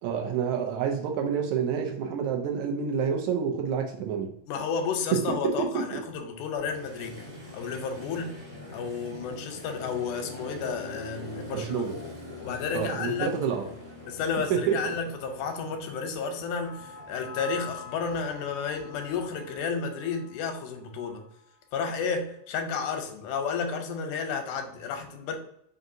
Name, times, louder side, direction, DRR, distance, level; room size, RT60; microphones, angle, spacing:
voice 1, 0.0-4.3 5.1-6.0 11.5-11.9 12.7-13.7 14.5-14.9, right 7 dB, 80° right, 3 dB, 1.8 m, -28 dB
voice 2, 4.5-7.2 7.5-8.4 8.7-11.9 12.4-13.3 14.1-21.2 21.7-25.4, left 5 dB, 85° left, 5 dB, 2.1 m, -32 dB
Motorcycle, 6.6-19.6, left 1 dB, 40° right, 0.7 m, -44 dB
sound 1, 16.6-20.7 20.9-21.2, left 5 dB, 35° left, 0.5 m, -45 dB
5.2 x 2.6 x 2.6 m, 0.73 s
omnidirectional pair, 3.4 m